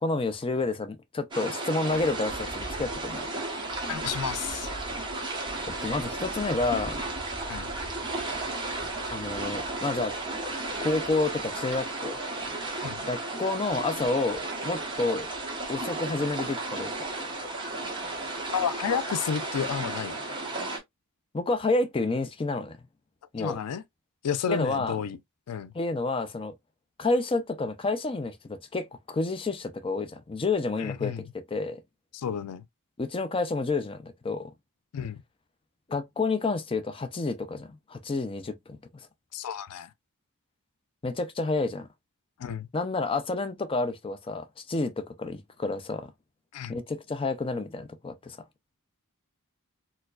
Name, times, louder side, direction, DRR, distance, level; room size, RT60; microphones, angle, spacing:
voice 1, 0.0-3.3 5.8-7.0 9.1-10.1 10.8-12.2 13.0-15.3 15.7-16.9 21.3-22.8 23.3-23.6 24.5-25.0 25.7-26.5 27.0-31.8 33.0-34.5 35.9-38.5 41.0-41.9 42.7-46.1 46.7-48.4, left 3 dB, 25° left, 0.4 m, -29 dB
sound 1, 1.3-20.8, right 2 dB, 20° right, 1.1 m, -34 dB
voice 2, 3.9-4.7 7.5-7.7 12.8-13.0 18.5-20.2 23.4-23.8 24.2-25.2 25.5-25.7 30.8-31.2 32.1-32.6 34.9-35.2 39.3-39.9 42.4-42.7 46.5-46.7, left 7 dB, 85° left, 0.4 m, -31 dB
4.4 x 2.2 x 2.4 m
head